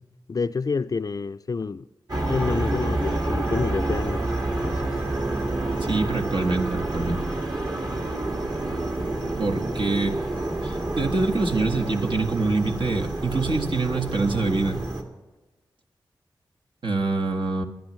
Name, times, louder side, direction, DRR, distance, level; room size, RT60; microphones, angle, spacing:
voice 1, 0.3-1.9 2.3-4.2 4.5-4.9, left 4 dB, 45° left, 0.4 m, -28 dB
sound 1, 2.1-15.0, right 2 dB, 50° right, 2.1 m, -28 dB
voice 2, 5.9-7.2 9.4-10.2 10.6-14.8 16.8-17.6, right 3 dB, 65° right, 1.5 m, -25 dB
28.0 x 10.5 x 3.2 m
cardioid pair, 50°, 9 cm